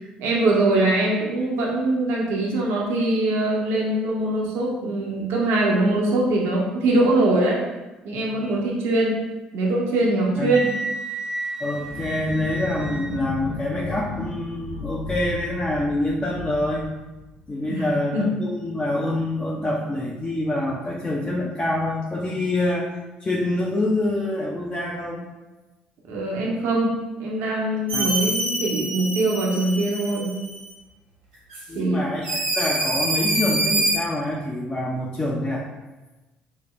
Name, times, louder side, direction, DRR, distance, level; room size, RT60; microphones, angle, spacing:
voice 1, 0.2-7.6 8.0-9.2 9.5-10.7 17.6-18.3 26.1-30.3 31.7-32.0, right 2 dB, 65° right, -3 dB, 0.7 m, -22 dB
Wind instrument woodwind instrument, 10.5-13.3, right 2 dB, 15° right, 0.3 m, -32 dB
voice 2, 11.6-16.8 17.5-22.9 23.2-25.3 27.9-28.1 31.7-35.6, left 1 dB, 25° left, -4 dB, 0.6 m, -26 dB
sound 1, 11.8-17.7, left 3 dB, 65° left, 0.6 m, -34 dB
sound 2, 27.9-30.7 31.5-31.6 32.2-34.0, right 1 dB, 80° right, 1.3 m, -26 dB
5.7 x 2.1 x 3.1 m, 1.1 s
figure-of-eight pair, 50°, 4 cm